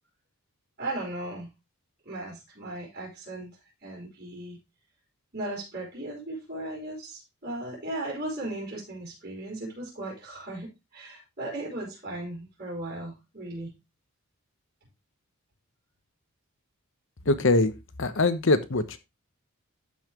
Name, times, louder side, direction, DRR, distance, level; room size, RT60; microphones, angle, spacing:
voice 1, 0.8-1.5 2.0-3.5 3.8-4.6 5.3-13.8, right 1 dB, 45° right, -4 dB, 4.5 m, -37 dB
voice 2, 17.3-17.7 18.0-19.0, left 2 dB, 60° left, 12 dB, 1.0 m, -22 dB
12.5 x 5.6 x 3.0 m, 0.23 s
head